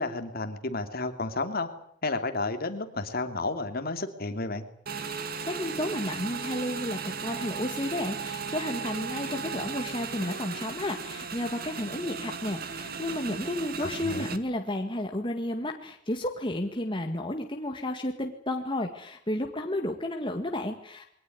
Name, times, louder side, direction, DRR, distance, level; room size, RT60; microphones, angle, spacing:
voice 1, 0.0-1.7 2.0-4.6 13.8-14.3, left 3 dB, 50° left, 7 dB, 2.9 m, -32 dB
Motorcycle / Engine, 4.9-14.4, right 5 dB, 50° right, 2.0 m, -36 dB
voice 2, 5.1-21.0, left 1 dB, 25° left, 4 dB, 1.9 m, -32 dB
22.5 x 18.5 x 9.6 m, 0.68 s
head